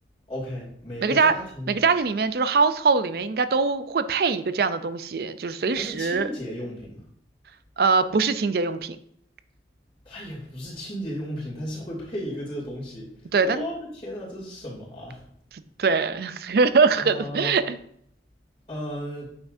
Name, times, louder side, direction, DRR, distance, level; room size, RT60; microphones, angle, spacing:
voice 1, 0.3-1.8 5.7-7.0 10.0-13.1 13.4-15.2 17.0-17.6 18.7-19.3, equal, 30° left, -7 dB, 2.8 m, -35 dB
voice 2, 1.0-1.3 1.7-6.3 7.8-9.0 13.3-13.6 15.8-17.8, right 4 dB, 55° right, 12 dB, 0.4 m, -22 dB
8.8 x 5.9 x 2.7 m, 0.68 s
head